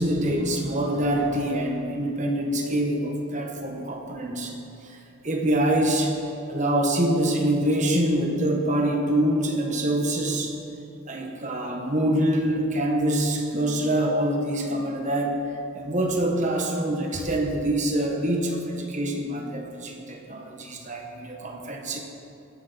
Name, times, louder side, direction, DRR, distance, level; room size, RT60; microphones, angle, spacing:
voice 1, 0.0-4.5 4.8-5.0 5.2-6.1 6.5-10.6 11.0-15.4 15.7-22.0, right 1 dB, 35° right, 1 dB, 1.5 m, -25 dB
16.5 x 12.0 x 4.2 m, 2.8 s
head